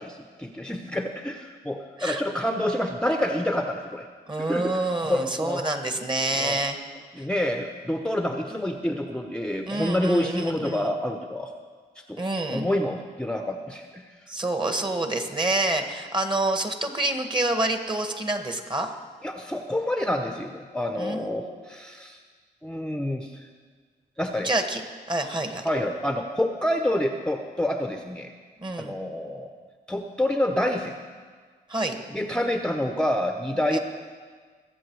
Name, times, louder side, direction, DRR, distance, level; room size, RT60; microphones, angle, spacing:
voice 1, 0.0-4.0 4.4-5.6 6.3-6.6 7.2-11.5 12.1-12.2 12.5-14.0 19.2-22.2 22.6-23.5 24.2-24.5 25.6-28.3 28.8-29.5 29.9-30.9 32.1-33.8, left 1 dB, 5° left, 5 dB, 0.9 m, -28 dB
voice 2, 4.3-6.8 9.7-10.9 12.2-12.6 14.3-18.9 21.0-21.6 24.4-24.8 25.1-25.7 28.6-28.9 31.7-32.0 33.7-33.8, right 2 dB, 25° right, 6 dB, 1.7 m, -27 dB
21.0 x 7.8 x 4.7 m, 1.5 s
cardioid pair, 55°, 18 cm